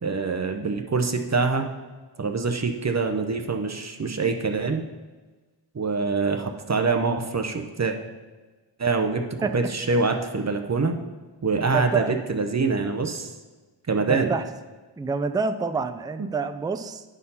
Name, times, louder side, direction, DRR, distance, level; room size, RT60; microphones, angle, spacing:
voice 1, 0.0-1.7 2.2-4.8 5.7-8.0 8.8-10.9 11.4-13.3 13.9-14.3, right 4 dB, 35° right, 5 dB, 0.7 m, -25 dB
voice 2, 11.7-12.2 14.1-14.5 15.0-17.0, right 4 dB, 10° right, 9 dB, 0.3 m, -27 dB
10.0 x 4.4 x 5.5 m, 1.3 s
wide cardioid pair, 95°, 48 cm